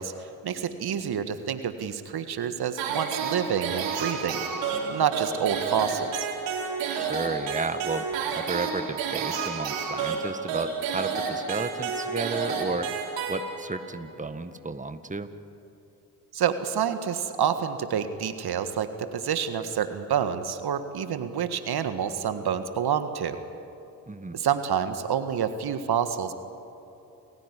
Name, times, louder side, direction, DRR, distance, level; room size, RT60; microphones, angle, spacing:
voice 1, 0.0-4.4 4.9-6.3 16.3-23.4 24.3-26.3, right 8 dB, 60° right, 9 dB, 1.7 m, -28 dB
sound 1, 2.8-13.9, right 5 dB, 75° right, 4.4 m, -30 dB
voice 2, 6.9-8.1 8.3-12.9 13.3-15.3 24.1-24.4, right 3 dB, 15° right, 10 dB, 1.7 m, -33 dB
29.5 x 15.5 x 10.0 m, 3.0 s
hypercardioid pair, 45°, 44 cm